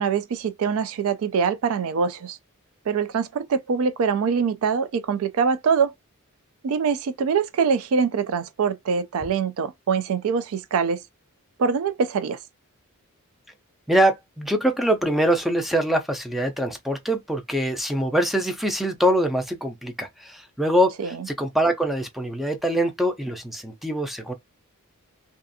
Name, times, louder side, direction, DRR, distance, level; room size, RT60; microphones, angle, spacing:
voice 1, 0.0-2.4 2.9-5.9 6.6-11.0 11.6-12.4 21.0-21.1, right 6 dB, 70° right, 0.3 m, -24 dB
voice 2, 13.9-24.3, right 1 dB, ahead, 0.4 m, -23 dB
2.5 x 2.3 x 2.6 m
head